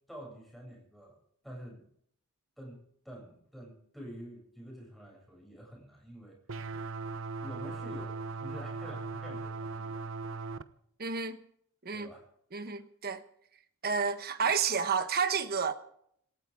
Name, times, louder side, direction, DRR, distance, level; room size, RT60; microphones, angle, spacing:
voice 1, 0.1-1.2 1.4-1.8 2.6-6.4 7.4-10.0 11.9-12.2, equal, ahead, 7.7 m, -47 dB
sound 1, 6.5-10.6, right 3 dB, 65° right, 0.9 m, -38 dB
voice 2, 11.0-11.4 11.8-12.1 12.5-13.2 13.8-15.7, right 5 dB, 45° right, 1.2 m, -30 dB
27.0 x 13.5 x 3.7 m
head